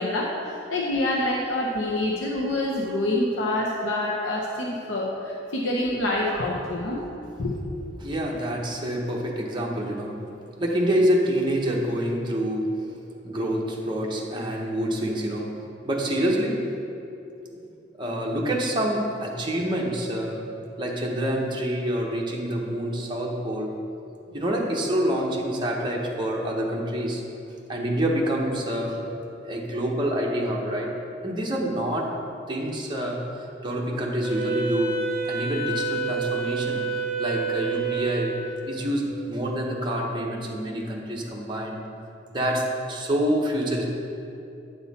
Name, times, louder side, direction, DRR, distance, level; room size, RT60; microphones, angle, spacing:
voice 1, 0.0-7.0 7.4-7.5, left 1 dB, 85° left, -2 dB, 0.8 m, -26 dB
voice 2, 8.0-10.2 10.6-12.8 13.2-16.7 17.5-17.6 18.0-20.4 20.8-23.8 24.3-27.2 27.7-29.0 29.4-30.9 31.2-32.2 32.5-33.2 33.6-36.8 37.2-38.4 38.7-41.8 42.3-43.8, equal, 25° right, -2 dB, 0.9 m, -27 dB
Wind instrument woodwind instrument, 34.2-38.8, right 4 dB, 5° right, 1.3 m, -29 dB
9.4 x 5.6 x 4.1 m, 2.7 s
head